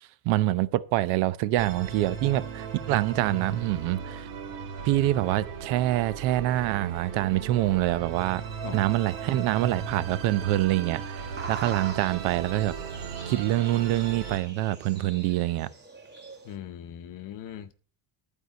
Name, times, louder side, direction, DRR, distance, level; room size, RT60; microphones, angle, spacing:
voice 1, 0.0-4.3 4.8-8.4 8.7-12.8 13.3-15.7, right 15 dB, 80° right, 0.9 m, -26 dB
Musical instrument, 1.6-14.4, right 6 dB, 60° right, 2.6 m, -37 dB
voice 2, 8.6-8.9 16.4-17.7, left 10 dB, 45° left, 0.8 m, -40 dB
sound 1, 10.6-16.6, right 4 dB, 25° right, 2.0 m, -44 dB
12.0 x 4.9 x 8.2 m
cardioid pair, 160°, 47 cm